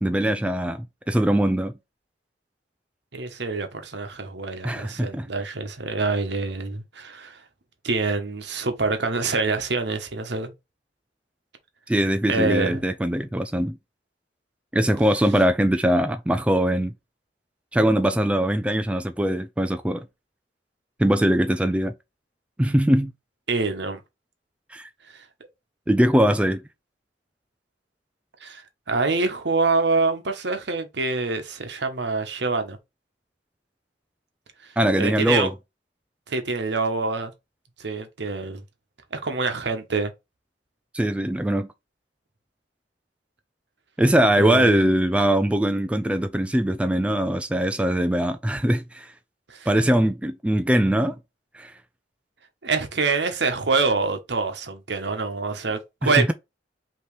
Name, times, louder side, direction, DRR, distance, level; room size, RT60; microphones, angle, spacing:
voice 1, 0.0-1.7 4.6-5.3 11.9-13.8 14.7-16.9 17.7-20.0 21.0-21.9 22.6-23.1 24.7-24.9 25.9-26.6 34.8-35.5 40.9-41.7 44.0-49.1 49.7-51.1 51.5-51.7 56.0-56.3, right 1 dB, 5° right, 0.3 m, -21 dB
voice 2, 3.1-7.4 7.8-10.5 12.3-12.8 23.5-24.0 25.1-25.2 28.4-28.6 28.9-32.8 34.6-35.5 36.3-37.3 37.8-38.6 39.1-40.1 44.4-44.8 49.5-49.7 52.6-56.3, right 3 dB, 70° right, 1.0 m, -26 dB
5.3 x 3.0 x 3.3 m
head